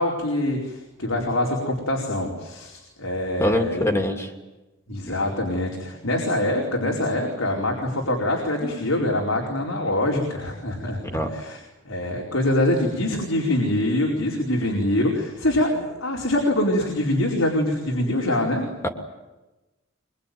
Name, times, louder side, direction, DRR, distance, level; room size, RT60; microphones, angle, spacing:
voice 1, 0.0-4.0 4.9-11.6 11.8-18.7, left 1 dB, 90° left, -1 dB, 4.7 m, -24 dB
voice 2, 3.4-4.3 11.0-11.3 18.8-18.9, left 1 dB, 15° left, 3 dB, 2.6 m, -23 dB
24.0 x 23.5 x 9.5 m, 1.1 s
head